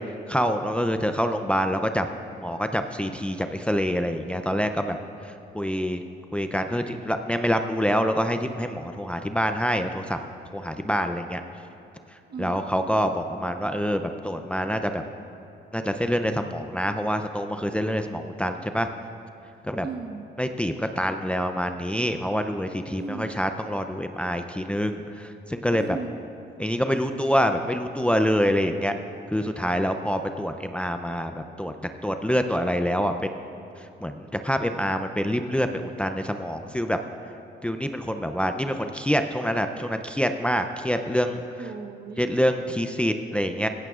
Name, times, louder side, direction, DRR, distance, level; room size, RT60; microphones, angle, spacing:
voice 1, 0.3-2.1 2.4-5.0 5.2-6.0 6.3-10.2 10.5-11.4 12.4-15.0 15.7-18.9 19.6-19.9 20.4-26.0 26.6-28.9 29.3-31.7 32.0-33.4 34.0-37.0 37.6-41.4 42.2-43.7, equal, 5° left, 7 dB, 0.5 m, -26 dB
voice 2, 12.3-12.7 19.8-20.3 22.9-23.4 25.7-26.2 41.6-42.4, right 4 dB, 55° right, 4 dB, 1.1 m, -37 dB
17.5 x 16.0 x 2.5 m, 2.8 s
cardioid pair, 90°, 20 cm